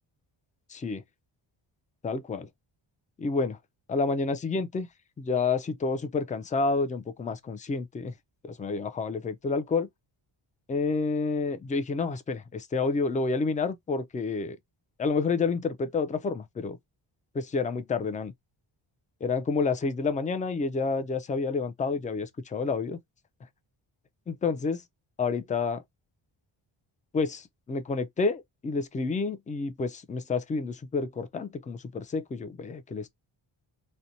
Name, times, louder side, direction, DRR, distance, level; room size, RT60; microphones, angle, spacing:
voice 1, 0.7-1.0 2.0-2.5 3.2-3.6 3.9-4.9 5.2-8.1 8.4-9.9 10.7-14.6 15.0-16.8 17.3-18.3 19.2-23.0 24.3-24.8 25.2-25.8 27.1-33.1, left 4 dB, 20° left, 0.3 m, -29 dB
2.5 x 2.2 x 2.7 m
cardioid pair, 90°, 49 cm